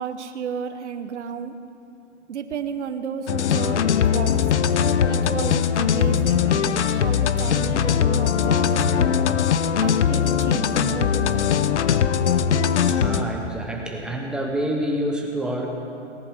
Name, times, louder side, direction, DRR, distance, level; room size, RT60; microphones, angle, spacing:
voice 1, 0.0-1.5 2.3-4.5 5.1-9.2 9.8-11.8, right 7 dB, 70° right, 8 dB, 1.1 m, -32 dB
sound 1, 3.3-13.3, left 8 dB, 70° left, 0.7 m, -20 dB
voice 2, 12.9-15.7, right 1 dB, ahead, 0 dB, 1.1 m, -27 dB
18.0 x 10.0 x 6.5 m, 2.6 s
hypercardioid pair, 145°, 36 cm